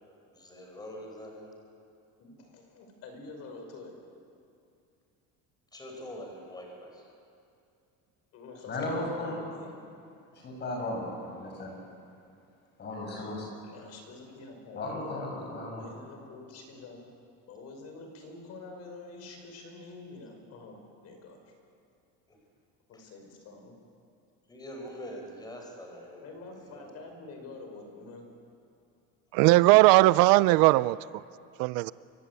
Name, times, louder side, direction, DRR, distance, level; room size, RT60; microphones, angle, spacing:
voice 1, 0.3-1.5 5.7-7.1 8.8-8.9 22.3-22.4 22.9-23.0 24.5-26.9, equal, 10° left, 1 dB, 4.9 m, -44 dB
voice 2, 2.2-3.9 8.3-9.7 13.6-14.9 15.8-17.0 17.5-21.4 22.9-23.7 26.2-28.2, left 3 dB, 45° left, 4 dB, 5.6 m, -47 dB
voice 3, 8.7-9.4 10.3-11.8 12.8-13.5 14.7-15.8, left 2 dB, 30° left, 1 dB, 7.5 m, -35 dB
voice 4, 29.3-31.0 31.6-31.9, right 19 dB, 70° right, 18 dB, 0.6 m, -19 dB
28.5 x 25.5 x 8.3 m, 2.5 s
cardioid pair, 170°, 35 cm